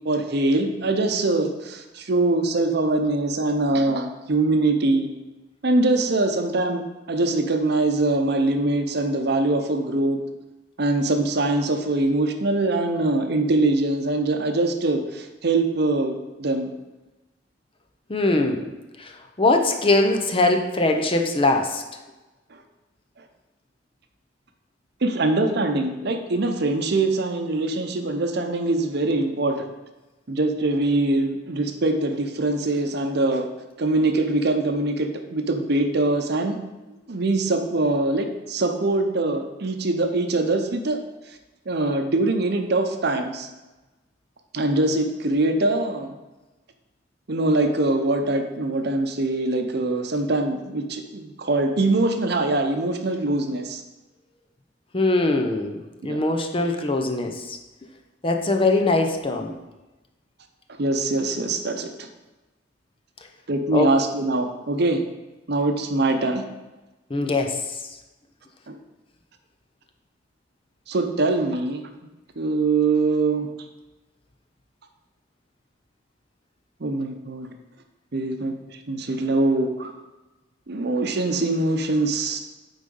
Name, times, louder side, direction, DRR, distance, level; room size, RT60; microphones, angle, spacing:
voice 1, 0.0-5.1 5.6-10.2 10.8-16.7 22.5-22.6 25.0-29.7 30.3-33.5 33.8-36.6 37.1-41.0 41.7-43.5 44.5-46.2 47.3-53.8 56.0-56.2 60.8-61.9 63.5-65.0 65.5-66.4 68.7-68.8 70.9-71.9 72.4-73.5 76.8-77.5 78.1-78.5 78.9-79.9 80.7-82.4, right 2 dB, 60° right, 6 dB, 0.8 m, -23 dB
voice 2, 18.1-18.6 19.0-21.8 54.9-57.6 58.2-59.5 63.7-63.9 67.1-67.6, left 2 dB, 30° left, 4 dB, 0.7 m, -22 dB
8.5 x 4.0 x 5.4 m, 1.1 s
head